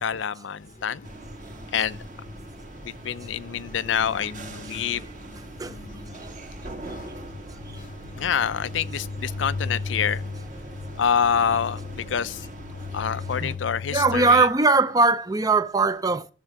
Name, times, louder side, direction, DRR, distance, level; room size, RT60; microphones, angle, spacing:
voice 1, 0.0-1.0 1.7-2.0 2.8-5.1 8.1-10.2 11.0-12.5 12.9-14.5, left 7 dB, 85° left, 0.5 m, -26 dB
sound 1, 0.6-14.4, left 4 dB, 45° left, 0.7 m, -38 dB
sound 2, 1.0-13.6, right 1 dB, 40° right, 1.6 m, -41 dB
voice 2, 13.9-16.3, right 3 dB, 20° right, 0.5 m, -20 dB
11.0 x 7.4 x 5.9 m
head